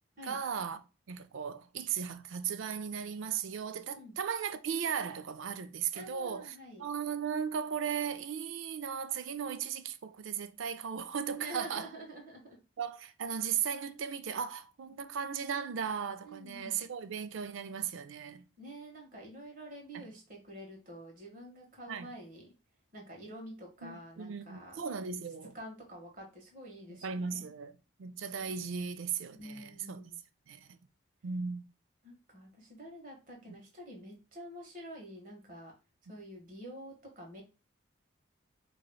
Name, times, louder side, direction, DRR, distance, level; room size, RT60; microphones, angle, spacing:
voice 1, 0.2-11.9 12.8-18.4 19.9-20.1 21.9-22.1 23.8-25.5 26.9-27.7 28.0-30.0 30.5-30.8 31.2-31.7, right 7 dB, 75° right, 0.4 m, -37 dB
voice 2, 5.9-6.9 11.4-12.6 14.9-15.0 16.2-16.8 18.6-22.5 22.9-24.8 25.5-27.5 29.3-30.2 32.0-35.7 36.1-37.4, right 1 dB, 45° right, 1.5 m, -48 dB
4.9 x 3.0 x 2.2 m
head